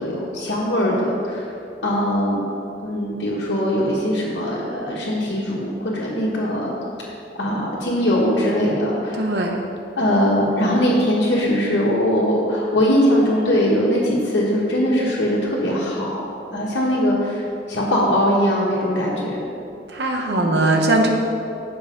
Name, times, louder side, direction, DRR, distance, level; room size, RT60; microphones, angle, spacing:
voice 1, 0.0-1.5 1.8-2.4 2.8-6.7 7.3-9.3 10.0-16.1 16.5-19.4 20.3-20.6, equal, 90° left, -9 dB, 1.6 m, -21 dB
voice 2, 9.2-9.6 19.9-21.1, right 2 dB, 75° right, 2 dB, 1.1 m, -20 dB
7.8 x 7.0 x 5.2 m, 2.6 s
head